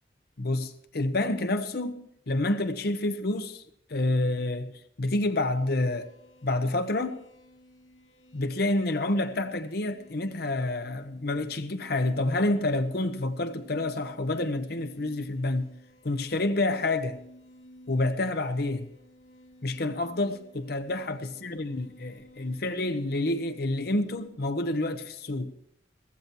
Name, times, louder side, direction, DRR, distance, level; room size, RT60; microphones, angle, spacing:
voice 1, 0.4-3.6 3.9-4.7 5.0-6.1 6.4-7.2 8.3-15.7 16.0-17.2 17.9-18.9 19.6-25.5, left 2 dB, 60° left, 0.9 m, -28 dB
sound 1, 5.3-24.3, equal, 80° left, 2.9 m, -55 dB
15.0 x 14.5 x 4.5 m
head